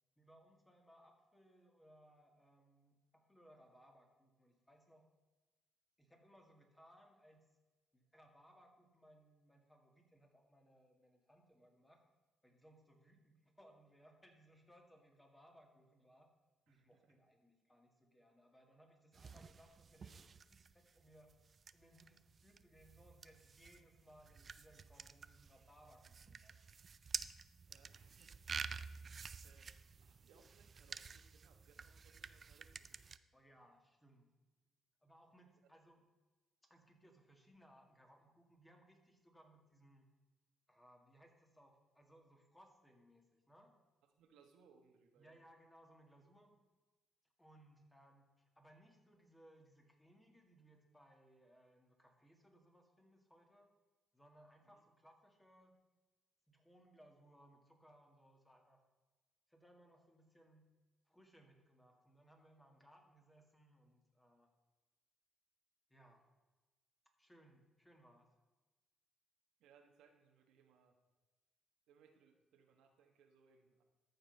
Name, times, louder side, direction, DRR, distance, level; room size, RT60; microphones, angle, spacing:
voice 1, 0.2-5.1 6.0-7.5 7.9-12.0 12.4-16.3 16.7-21.3 21.7-26.5 33.3-34.3 35.0-36.0 36.7-40.1 40.7-43.8 45.2-46.6 47.4-53.7 54.1-55.8 56.5-58.8 59.5-60.7 61.1-64.5 65.9-66.3 67.2-68.3, equal, 10° left, 2 dB, 2.0 m, -66 dB
voice 2, 16.7-17.1 27.7-28.4 28.9-29.7 30.0-33.2 44.2-45.4 54.6-54.9 69.6-71.0 71.9-73.8, right 6 dB, 85° right, 4 dB, 1.2 m, -69 dB
sound 1, 19.1-33.2, right 5 dB, 45° right, 0.4 m, -50 dB
13.5 x 5.4 x 5.3 m, 1.2 s
cardioid pair, 90°, 0 cm